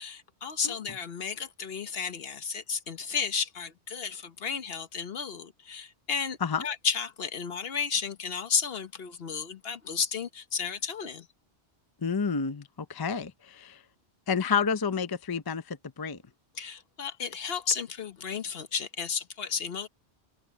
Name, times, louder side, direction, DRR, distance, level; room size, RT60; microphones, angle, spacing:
voice 1, 0.0-11.3 16.6-19.9, left 6 dB, 60° left, 1.2 m, -33 dB
voice 2, 12.0-13.8 14.3-16.2, left 6 dB, 25° left, 0.5 m, -30 dB
omnidirectional pair, 1.1 m